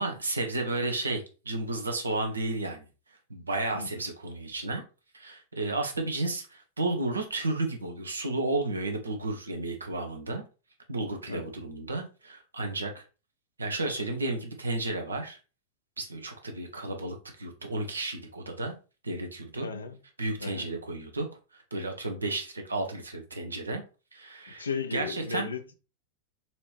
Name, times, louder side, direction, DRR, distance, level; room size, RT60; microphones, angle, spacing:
voice 1, 0.0-2.9 3.3-4.8 5.1-10.4 10.9-13.0 13.6-15.4 16.0-18.7 19.0-19.7 20.2-21.3 21.5-23.8 24.1-25.5, right 2 dB, 75° right, 0.8 m, -32 dB
voice 2, 19.6-20.0 20.4-20.6 24.6-25.8, left 5 dB, 75° left, 0.6 m, -35 dB
4.2 x 2.9 x 3.2 m
figure-of-eight pair, 90°, 0 cm